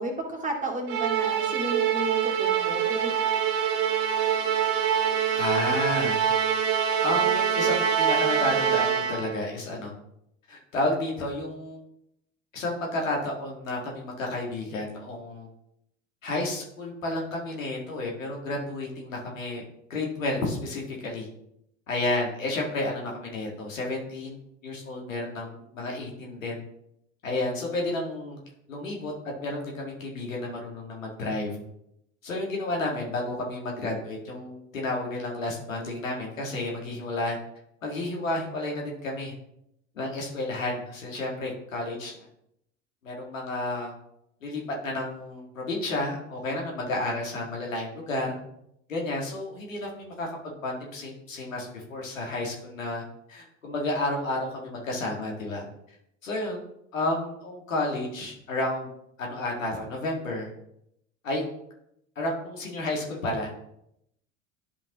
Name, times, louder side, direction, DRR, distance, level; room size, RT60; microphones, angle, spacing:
voice 1, 0.0-3.1, right 2 dB, 20° right, -1 dB, 2.1 m, -32 dB
Musical instrument, 0.9-9.4, right 8 dB, 60° right, 1.3 m, -25 dB
voice 2, 5.3-6.2 7.0-9.9 10.5-11.8 12.5-15.5 16.2-19.6 19.9-21.3 21.9-26.7 27.2-28.4 28.7-29.1 29.4-31.6 32.2-37.4 37.8-39.3 40.0-42.3 43.0-43.9 44.4-48.4 48.9-55.6 56.2-56.6 56.9-58.9 59.2-60.5 61.2-61.4 62.2-63.5, left 2 dB, 90° left, -1 dB, 1.8 m, -31 dB
10.5 x 5.3 x 2.9 m, 0.78 s
hypercardioid pair, 75°, 38 cm